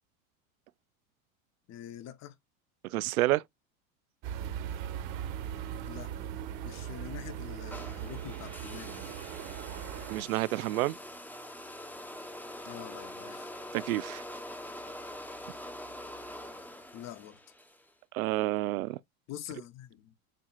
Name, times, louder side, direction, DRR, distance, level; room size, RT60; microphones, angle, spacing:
voice 1, 1.7-2.3 5.9-6.1 6.6-9.2 12.6-13.5 16.9-17.4 19.3-20.1, left 11 dB, 40° left, 1.1 m, -45 dB
voice 2, 2.9-3.4 10.1-11.0 13.7-14.2 18.1-19.0, right 17 dB, 80° right, 0.5 m, -29 dB
sound 1, 4.2-10.2, right 9 dB, 55° right, 1.5 m, -39 dB
sound 2, 7.7-17.9, left 1 dB, 5° left, 1.0 m, -44 dB
7.5 x 2.8 x 2.5 m
hypercardioid pair, 100°, 42 cm